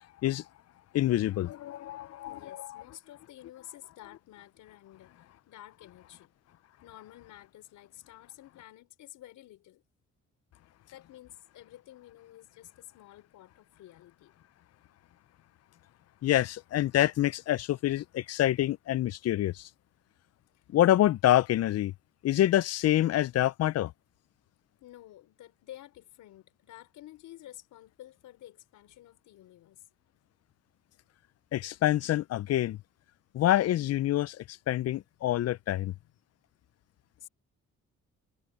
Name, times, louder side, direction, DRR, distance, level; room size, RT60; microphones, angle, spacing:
voice 1, 0.9-2.8 16.2-19.7 20.7-21.9 22.2-23.9 31.5-32.8 33.3-35.9, left 13 dB, 55° left, 0.5 m, -26 dB
voice 2, 2.3-5.2 5.5-6.3 6.8-9.8 10.9-14.3 20.5-20.6 24.8-29.9 35.8-36.1 37.2-37.3, left 14 dB, 85° left, 4.5 m, -51 dB
cardioid pair, 90°, 30 cm